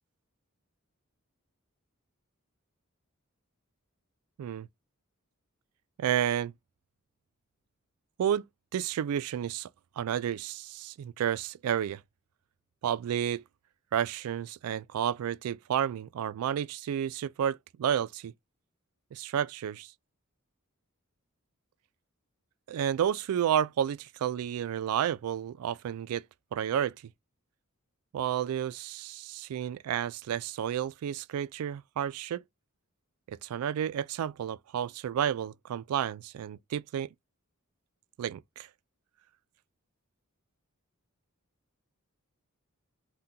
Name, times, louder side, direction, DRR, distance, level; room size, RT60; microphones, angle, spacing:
voice 1, 6.0-6.5 8.2-8.5 8.7-9.7 10.0-12.0 12.8-13.4 13.9-18.3 19.1-19.9 22.7-26.2 26.5-26.9 28.1-32.4 33.3-37.1 38.2-38.7, right 9 dB, 85° right, 0.3 m, -31 dB
3.7 x 2.2 x 2.7 m
head